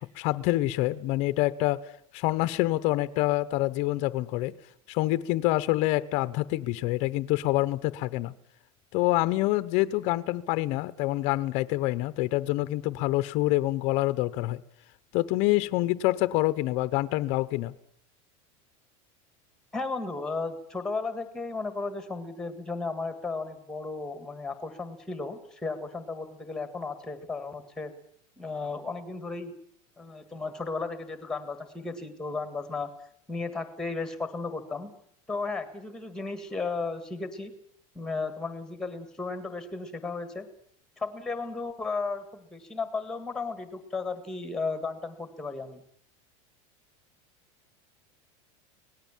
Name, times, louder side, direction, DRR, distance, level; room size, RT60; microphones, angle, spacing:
voice 1, 0.0-1.8 2.1-4.5 4.9-8.3 8.9-14.6 15.1-17.7, left 18 dB, 40° left, 14 dB, 0.9 m, -26 dB
voice 2, 19.7-27.9 28.4-29.5 30.0-32.9 33.3-34.9 35.3-37.5 38.0-40.5 41.0-45.8, left 3 dB, 5° left, 10 dB, 1.8 m, -34 dB
25.0 x 19.0 x 7.3 m, 0.63 s
supercardioid pair, 180°, 17 cm